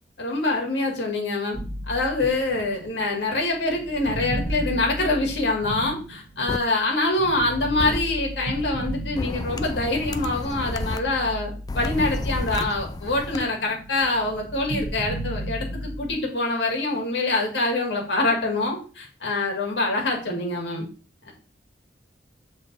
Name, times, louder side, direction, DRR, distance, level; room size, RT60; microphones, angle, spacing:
voice 1, 0.2-1.6 1.9-20.8 21.3-21.4, left 2 dB, 75° left, 1 dB, 1.9 m, -25 dB
sound 1, 1.5-6.6 7.2-9.8 10.3-13.2 13.4-16.1, right 1 dB, 10° right, 3.0 m, -34 dB
sound 2, 6.5-6.6 7.8-8.0 9.2-11.0 11.7-13.4, left 2 dB, 20° left, 0.3 m, -31 dB
6.7 x 3.9 x 4.0 m, 0.38 s
head